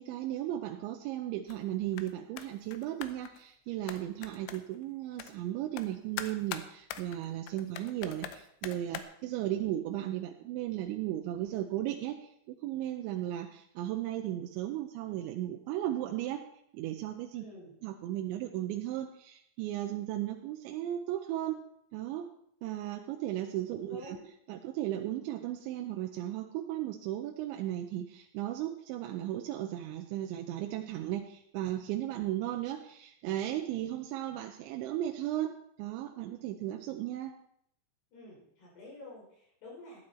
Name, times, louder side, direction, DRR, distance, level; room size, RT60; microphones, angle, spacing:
voice 1, 0.0-16.4 16.7-17.4 17.8-21.6 21.9-22.2 22.6-24.2 24.5-35.5 35.8-37.3, right 13 dB, 85° right, 3 dB, 3.1 m, -35 dB
sound 1, 1.5-1.7 1.9-2.1 2.4-3.4 3.9-4.8 5.2-5.3 5.8-5.9 6.2-9.0, left 11 dB, 80° left, 2.9 m, -42 dB
voice 2, 17.4-17.7 23.7-24.2 38.1-40.0, left 2 dB, 65° left, -4 dB, 7.0 m, -49 dB
14.5 x 9.6 x 4.3 m, 0.70 s
omnidirectional pair, 5.2 m